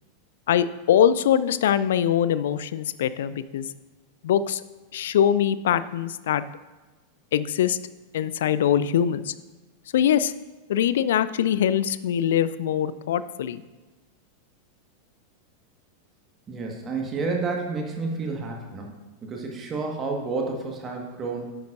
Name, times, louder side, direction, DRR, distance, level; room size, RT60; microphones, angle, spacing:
voice 1, 0.5-3.7 4.2-4.6 4.9-6.4 7.3-7.8 8.1-9.3 9.9-10.3 10.7-13.6, left 9 dB, 60° left, 16 dB, 0.3 m, -22 dB
voice 2, 16.5-21.5, right 3 dB, 25° right, 1 dB, 1.6 m, -30 dB
10.0 x 8.7 x 2.6 m, 1.2 s
figure-of-eight pair, 90°, 0 cm